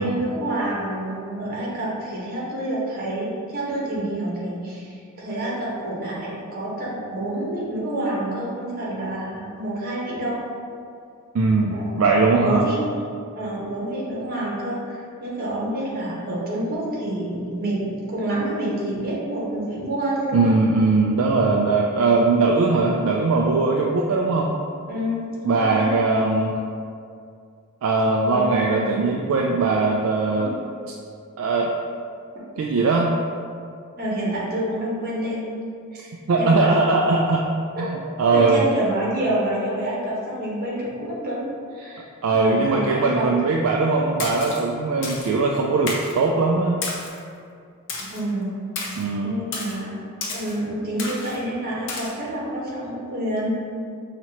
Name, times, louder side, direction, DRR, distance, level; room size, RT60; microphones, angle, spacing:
voice 1, 0.0-10.4 11.7-12.8 13.3-20.5 24.8-25.9 28.2-29.0 30.4-30.5 32.3-32.4 34.0-35.4 35.9-36.7 37.8-37.9 38.3-43.3 48.0-48.6 49.2-50.0 50.3-53.5, right 1 dB, 45° right, -6 dB, 1.1 m, -28 dB
voice 2, 11.3-12.7 20.3-24.6 25.4-26.5 27.8-30.5 31.4-31.7 32.6-33.1 36.3-37.5 37.8-38.6 42.2-46.8 49.0-49.4, right 3 dB, 65° right, -1 dB, 0.3 m, -20 dB
Splash splatter, 44.2-44.6 45.0-45.3 45.9-46.2 46.8-47.2 47.9-48.2 48.8-49.0 49.5-49.8 50.2-50.5 51.0-51.4 51.9-52.1, left 3 dB, 60° left, 0.7 m, -31 dB
5.6 x 2.9 x 2.9 m, 2.4 s
head